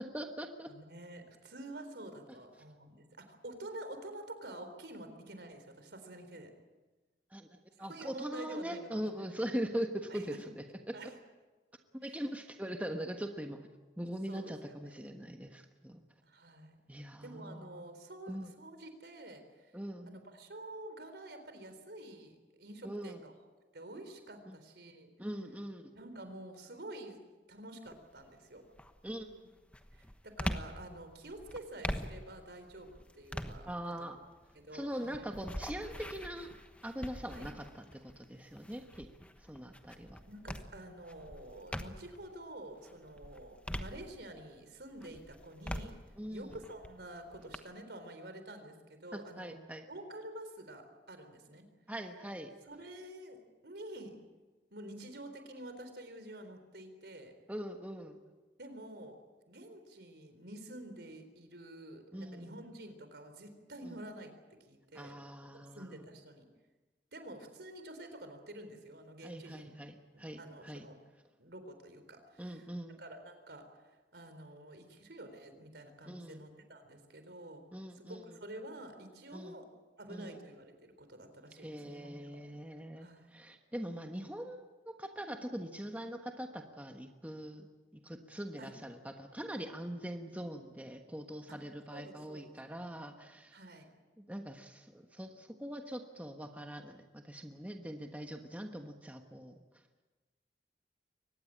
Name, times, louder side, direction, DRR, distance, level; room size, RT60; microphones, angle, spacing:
voice 1, 0.0-0.7 7.3-11.1 11.9-13.7 14.0-16.0 16.9-17.8 18.3-18.5 19.7-20.1 22.8-23.2 24.5-24.6 25.2-25.9 29.0-29.3 33.7-34.2 34.7-36.5 36.8-37.6 37.9-39.1 39.4-40.2 46.2-46.6 49.1-49.8 51.9-52.5 57.5-58.2 62.1-62.5 63.8-64.0 64.9-65.9 69.2-70.9 72.4-73.0 76.1-76.4 77.7-78.2 79.3-79.6 80.1-80.4 81.6-87.7 87.9-93.6 94.2-99.6, equal, 10° right, 4 dB, 1.3 m, -42 dB
voice 2, 0.7-6.5 7.8-9.4 10.1-10.4 10.9-11.1 12.0-12.2 14.3-15.1 16.2-16.8 17.2-19.7 20.1-23.3 23.7-25.1 25.9-27.2 27.5-28.6 29.4-29.5 29.9-34.1 34.5-35.2 37.3-37.5 40.3-46.0 46.3-49.6 49.9-51.7 52.7-54.2 54.7-57.3 58.6-59.2 59.5-64.3 64.7-65.1 65.5-66.5 67.1-69.7 70.1-71.0 71.4-72.7 73.0-77.6 77.9-79.6 80.0-82.1 83.0-83.3 88.6-88.7 91.9-92.5 93.5-93.9, right 1 dB, 70° right, 8 dB, 4.0 m, -49 dB
sound 1, 27.9-28.3 28.7-42.3 42.7-44.6 45.0-47.6, equal, 5° left, 1.1 m, -44 dB
23.5 x 19.5 x 8.8 m, 1.2 s
head